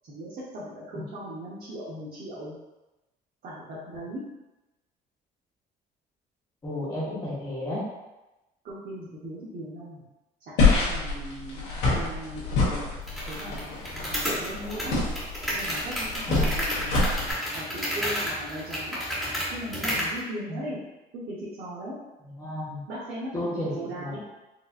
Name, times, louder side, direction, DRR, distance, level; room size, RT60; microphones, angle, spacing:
voice 1, 0.1-2.6 3.4-4.2 8.6-10.0 10.5-11.6 11.9-12.9 13.3-15.0 15.5-19.0 19.5-20.8 21.1-22.0 22.9-24.2, right 1 dB, 60° right, -8 dB, 1.0 m, -38 dB
voice 2, 6.6-7.9 16.3-16.5 20.5-20.6 22.4-22.8 23.3-24.2, left 1 dB, 25° left, -9 dB, 1.1 m, -32 dB
sound 1, 10.6-17.3, left 3 dB, 85° left, 1.4 m, -26 dB
sound 2, 13.1-20.2, equal, ahead, 1.2 m, -32 dB
4.5 x 2.7 x 2.5 m, 1.0 s
cardioid pair, 110°, 17 cm